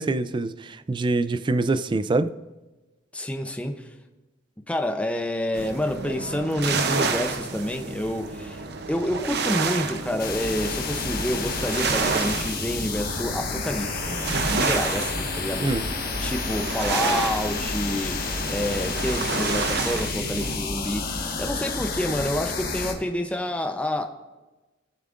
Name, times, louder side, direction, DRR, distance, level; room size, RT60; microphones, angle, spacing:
voice 1, 0.0-2.3 15.6-15.8, right 2 dB, 25° right, 0.3 m, -24 dB
voice 2, 3.1-3.8 4.7-8.6 8.9-24.1, left 1 dB, 5° left, 0.6 m, -28 dB
sound 1, 5.5-20.6, right 4 dB, 60° right, 0.7 m, -30 dB
sound 2, 10.2-22.9, left 4 dB, 50° left, 1.5 m, -30 dB
18.5 x 7.2 x 2.5 m
head